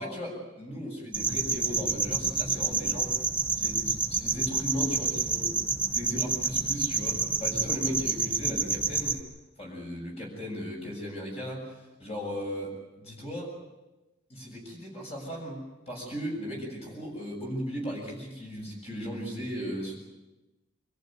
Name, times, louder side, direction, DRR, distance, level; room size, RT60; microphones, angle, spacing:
voice 1, 0.0-3.1 3.6-9.2 9.6-13.5 14.3-20.0, equal, 30° left, -2 dB, 7.2 m, -37 dB
sound 1, 1.1-9.2, right 4 dB, 5° right, 1.1 m, -28 dB
25.0 x 14.5 x 9.4 m, 1.0 s
head